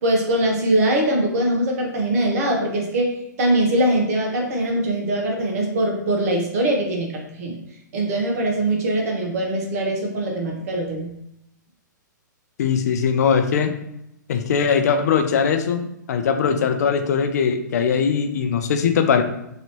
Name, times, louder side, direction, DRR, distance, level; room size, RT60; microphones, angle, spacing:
voice 1, 0.0-7.6 7.9-11.1, right 1 dB, 50° right, 1 dB, 1.0 m, -22 dB
voice 2, 12.6-13.7 14.3-19.2, left 6 dB, 55° left, 7 dB, 0.4 m, -20 dB
3.1 x 2.7 x 3.0 m, 0.79 s
figure-of-eight pair, 120°, 10 cm